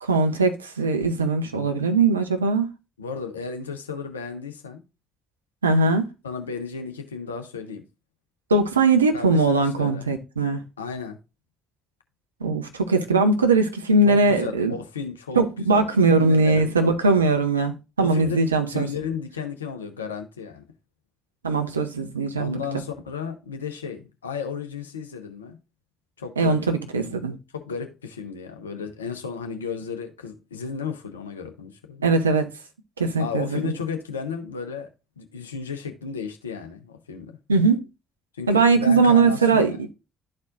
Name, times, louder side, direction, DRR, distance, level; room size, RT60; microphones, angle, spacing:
voice 1, 0.0-2.7 5.6-6.1 8.5-10.6 12.4-14.7 15.4-18.9 21.4-22.5 26.4-27.3 32.0-32.5 33.0-33.7 37.5-37.8 38.5-39.7, right 3 dB, 90° right, 0.6 m, -20 dB
voice 2, 3.0-4.8 6.2-7.8 9.1-10.1 10.8-11.2 14.1-17.3 18.0-18.4 18.7-20.7 22.4-25.6 26.2-26.6 27.5-32.2 33.2-34.9 35.2-37.4 38.3-39.9, left 6 dB, 85° left, 0.7 m, -34 dB
12.0 x 4.3 x 2.5 m
figure-of-eight pair, 40°, 0 cm